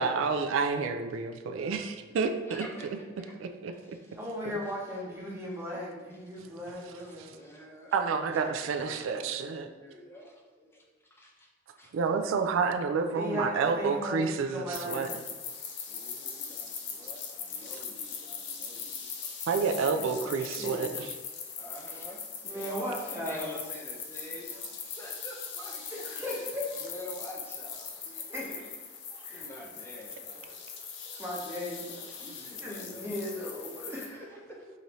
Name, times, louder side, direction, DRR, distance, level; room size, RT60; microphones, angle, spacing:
voice 1, 0.0-2.7 3.4-3.7 4.4-4.5 7.9-9.7 11.9-15.2 17.0-17.1 19.5-21.1, right 5 dB, 90° right, 6 dB, 0.3 m, -29 dB
voice 2, 2.5-2.9 3.2-3.3 3.9-4.0 7.0-10.8 11.1-11.5 11.7-11.9 15.9-19.1 19.8-20.3 21.5-25.9 26.8-27.9 29.3-30.6 32.2-33.2 33.8-34.2 34.5-34.6, equal, 10° left, -2 dB, 0.5 m, -47 dB
voice 3, 4.1-7.4 13.1-15.1 17.6-17.8 19.9-21.0 21.9-22.0 22.4-23.6 24.5-24.6 25.9-26.9 28.0-28.6 29.2-29.5 30.3-30.5 31.2-32.1 32.4-34.2, left 1 dB, 15° right, -4 dB, 0.8 m, -37 dB
sound 1, 14.7-34.1, left 6 dB, 65° left, 0.6 m, -41 dB
5.0 x 2.7 x 3.0 m, 1.3 s
head